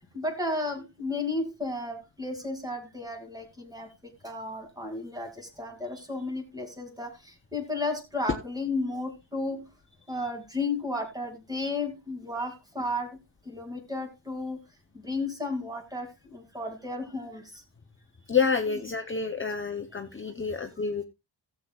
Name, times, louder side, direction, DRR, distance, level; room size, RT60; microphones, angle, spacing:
voice 1, 0.1-3.9 4.2-9.7 10.1-13.2 13.4-14.6 14.9-17.6, left 2 dB, 10° right, 2.2 m, -33 dB
voice 2, 18.3-21.0, left 5 dB, 25° left, 0.6 m, -28 dB
16.5 x 7.5 x 2.3 m
wide cardioid pair, 180°, 45 cm